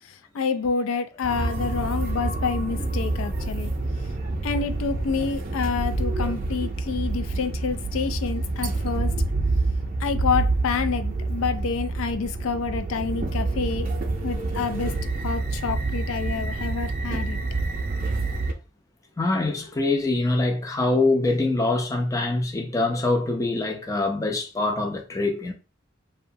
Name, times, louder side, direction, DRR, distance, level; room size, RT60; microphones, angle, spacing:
voice 1, 0.3-3.7 4.4-9.1 10.0-13.9 14.2-14.9 15.2-17.4, left 5 dB, 85° left, 0.4 m, -28 dB
sound 1, 1.2-18.5, right 2 dB, 45° right, 0.5 m, -27 dB
voice 2, 19.2-25.5, left 2 dB, 15° left, 0.4 m, -24 dB
2.8 x 2.1 x 2.6 m
head